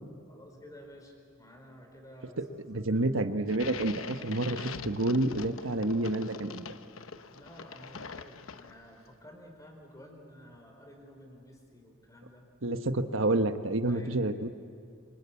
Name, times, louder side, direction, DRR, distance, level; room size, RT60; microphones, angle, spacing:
voice 1, 0.3-2.8 7.3-12.5 13.9-14.2, equal, 15° left, 2 dB, 4.7 m, -52 dB
voice 2, 2.7-6.6 12.6-14.5, right 2 dB, 75° right, 8 dB, 1.3 m, -29 dB
sound 1, 3.5-9.0, left 5 dB, 85° left, 1.0 m, -43 dB
27.5 x 25.0 x 8.5 m, 2.5 s
head